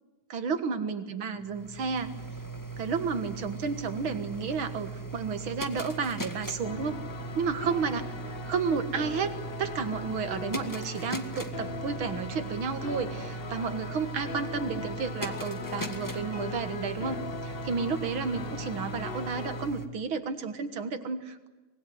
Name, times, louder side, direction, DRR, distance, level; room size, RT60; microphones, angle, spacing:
voice 1, 0.3-2.1 2.8-7.0 7.4-8.1 8.5-21.5, right 5 dB, 85° right, 9 dB, 2.5 m, -32 dB
sound 1, 1.4-19.9, right 3 dB, 10° left, 1.4 m, -39 dB
sound 2, 6.6-19.7, left 5 dB, 45° left, 0.8 m, -40 dB
24.5 x 20.5 x 9.6 m, 1.2 s
omnidirectional pair, 2.2 m